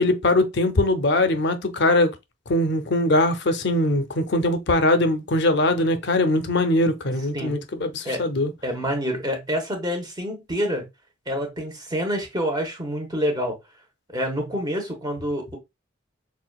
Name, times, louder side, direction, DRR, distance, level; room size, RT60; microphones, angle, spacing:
voice 1, 0.0-2.1 2.5-8.5, left 1 dB, 55° left, 0.6 m, -21 dB
voice 2, 8.6-10.9 11.3-13.6 14.1-15.6, equal, 20° right, 1.1 m, -27 dB
5.8 x 2.4 x 2.3 m
head